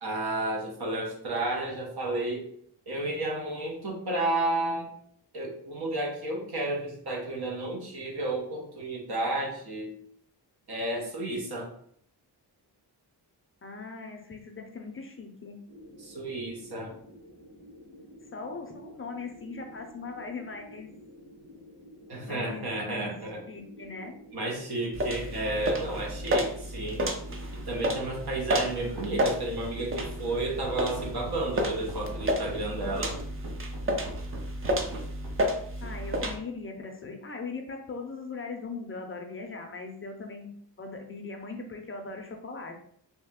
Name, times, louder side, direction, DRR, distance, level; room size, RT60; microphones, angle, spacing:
voice 1, 0.0-2.4 2.9-4.9 5.3-9.9 10.7-11.7 16.0-16.9 22.1-23.4 24.3-27.0 27.5-33.2, right 2 dB, 65° right, 0 dB, 1.1 m, -32 dB
voice 2, 13.6-15.6 18.3-20.9 22.2-23.1 23.5-24.2 35.8-40.5 40.8-42.8, left 4 dB, 30° left, 3 dB, 0.4 m, -39 dB
sound 1, 15.7-32.6, equal, 15° right, 0.9 m, -51 dB
sound 2, 24.9-36.4, equal, 30° right, 0.5 m, -31 dB
Run, 29.0-35.6, right 2 dB, 90° right, 0.8 m, -43 dB
3.2 x 2.8 x 3.5 m, 0.65 s
wide cardioid pair, 155°, 41 cm